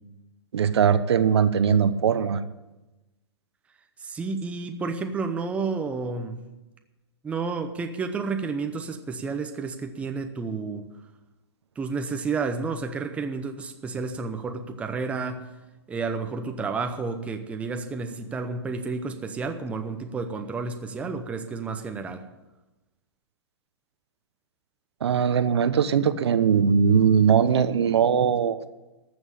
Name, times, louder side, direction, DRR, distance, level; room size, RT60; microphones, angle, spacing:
voice 1, 0.5-2.4 25.0-28.6, right 7 dB, 70° right, 12 dB, 1.0 m, -20 dB
voice 2, 4.0-6.4 7.2-10.8 11.8-15.5 15.9-22.3, right 4 dB, 10° right, 6 dB, 0.8 m, -31 dB
14.0 x 6.2 x 9.8 m, 1.0 s
hypercardioid pair, 145°, 15 cm